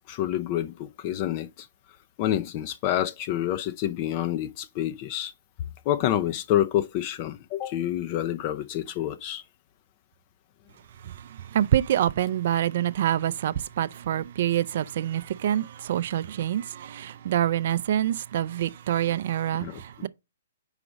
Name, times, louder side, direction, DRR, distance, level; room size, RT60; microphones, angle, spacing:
voice 1, 0.1-1.7 2.2-5.3 5.9-9.4 19.6-19.8, left 12 dB, 40° left, 0.5 m, -28 dB
voice 2, 11.0-20.1, right 11 dB, 55° right, 0.4 m, -26 dB
4.9 x 4.9 x 6.2 m
hypercardioid pair, 125°, 0 cm